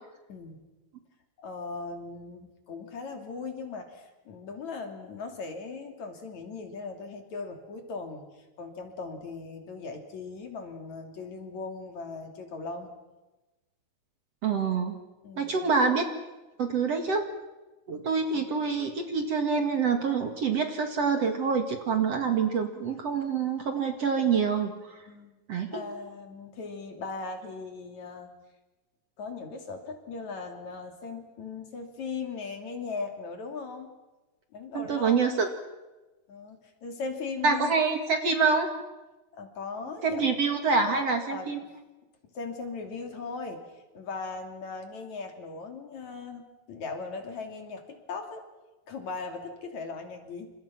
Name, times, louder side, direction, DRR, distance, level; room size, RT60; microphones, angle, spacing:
voice 1, 0.3-0.6 1.4-8.2 8.6-12.9 15.2-15.7 18.3-18.7 25.1-25.4 25.7-28.3 29.2-33.9 34.5-35.5 36.3-37.8 39.3-40.4 40.9-41.0 41.3-41.5 42.3-48.4 48.9-50.5, left 4 dB, 50° left, 4 dB, 4.0 m, -38 dB
voice 2, 14.4-15.0 15.4-16.1 16.6-17.3 17.9-25.0 25.5-25.8 34.7-35.5 37.4-38.7 40.0-41.6, right 5 dB, 50° right, 5 dB, 2.6 m, -26 dB
29.5 x 27.0 x 6.0 m, 1.1 s
omnidirectional pair, 4.4 m